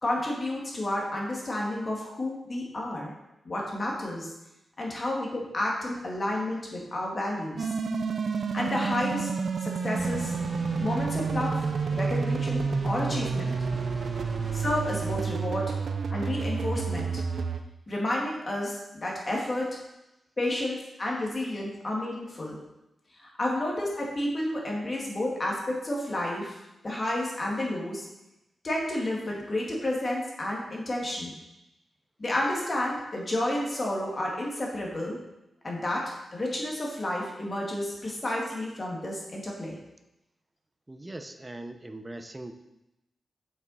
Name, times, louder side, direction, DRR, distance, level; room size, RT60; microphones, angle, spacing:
voice 1, 0.0-3.1 3.4-4.3 4.8-7.7 8.3-9.3 9.6-10.4 10.8-11.6 11.9-13.5 14.5-15.7 16.1-17.2 17.9-19.8 20.4-22.6 23.2-26.5 26.8-28.0 28.6-31.3 32.2-35.2 35.6-39.8, left 1 dB, 35° left, -2 dB, 1.9 m, -31 dB
sound 1, 7.6-17.6, right 5 dB, 70° right, 0.5 m, -29 dB
sound 2, 10.0-15.3, left 1 dB, 20° left, 0.7 m, -42 dB
voice 2, 40.9-42.5, right 1 dB, 20° right, 7 dB, 0.6 m, -40 dB
7.1 x 6.0 x 4.0 m, 0.91 s
wide cardioid pair, 90°, 0 cm